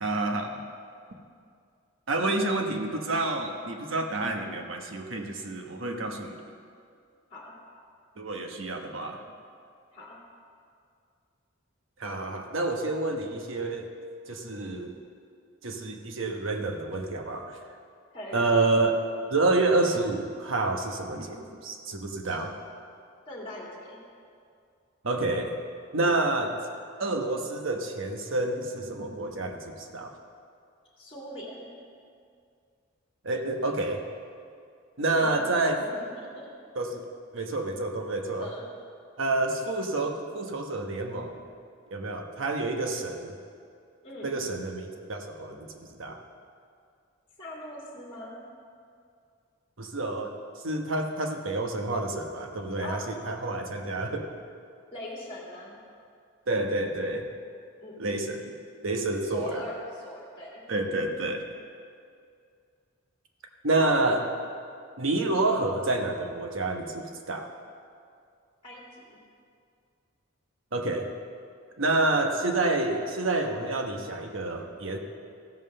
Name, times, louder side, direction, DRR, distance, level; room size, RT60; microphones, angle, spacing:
voice 1, 0.0-0.6 2.1-6.4 8.2-9.2 12.0-13.9 14.3-15.0 15.6-17.6 18.3-18.9 19.3-22.5 25.0-25.6 25.9-26.6 27.0-30.1 33.2-34.0 35.0-35.8 36.7-37.0 37.3-38.5 39.2-41.4 41.9-43.3 44.2-46.2 49.8-54.3 56.5-57.3 58.0-58.5 58.8-59.6 60.7-61.4 63.6-64.3 65.0-67.5 70.7-71.1 71.8-75.0, right 2 dB, 70° right, 3 dB, 1.1 m, -28 dB
voice 2, 18.1-18.5 22.2-22.4 23.3-24.0 31.0-31.7 35.1-35.5 35.8-35.9 36.2-36.5 38.4-38.6 44.0-44.4 47.4-48.4 52.8-53.0 54.9-55.8 57.8-58.1 59.2-60.6 68.6-69.2, left 1 dB, 25° left, -4 dB, 2.5 m, -41 dB
15.0 x 5.5 x 6.6 m, 2.3 s
head